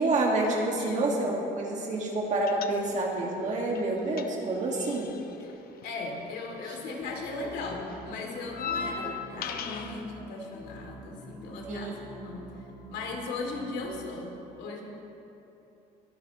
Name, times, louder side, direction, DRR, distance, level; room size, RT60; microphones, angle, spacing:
voice 1, 0.0-5.1 6.7-6.8 8.8-9.1 11.7-12.1, right 2 dB, 45° right, -1 dB, 1.9 m, -28 dB
voice 2, 0.8-1.4 5.4-5.5 5.8-11.9 12.2-12.4 12.9-14.8, left 3 dB, 80° left, 1 dB, 2.6 m, -37 dB
sound 1, 2.5-3.2 3.5-6.9 7.1-10.0, left 6 dB, 65° left, 0.9 m, -39 dB
sound 2, 7.0-13.9, right 2 dB, 20° left, 2.1 m, -48 dB
22.5 x 12.0 x 3.1 m, 2.9 s
cardioid pair, 110°, 17 cm